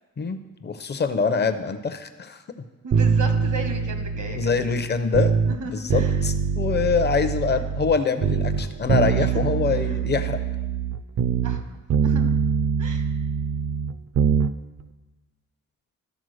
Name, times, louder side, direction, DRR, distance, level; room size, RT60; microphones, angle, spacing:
voice 1, 0.2-2.4 4.3-5.3 5.7-10.4, left 5 dB, 35° left, 10 dB, 0.6 m, -25 dB
voice 2, 2.8-4.4 5.4-6.2 9.2-9.3 11.4-11.6 12.0-12.3 12.8-13.0, right 3 dB, 85° right, 5 dB, 1.3 m, -34 dB
sound 1, 2.9-5.6 5.9-8.0 8.2-11.6 11.9-14.5 14.8-14.9, right 7 dB, 60° right, 0.5 m, -23 dB
12.5 x 4.5 x 6.4 m, 1.2 s
wide cardioid pair, 165°, 29 cm